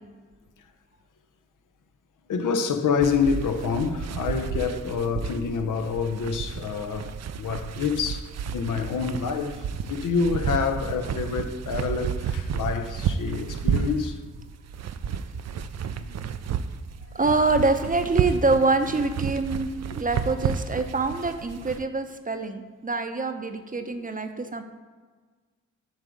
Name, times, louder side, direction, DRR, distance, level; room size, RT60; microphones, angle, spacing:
voice 1, 2.3-14.2 16.0-16.2 17.0-17.2, left 5 dB, 70° left, 0.7 m, -27 dB
sound 1, 3.0-21.8, right 7 dB, 55° right, 0.5 m, -31 dB
voice 2, 17.1-19.7 20.0-24.6, right 3 dB, 25° right, 0.7 m, -25 dB
7.4 x 3.4 x 5.1 m
supercardioid pair, 45°, 33 cm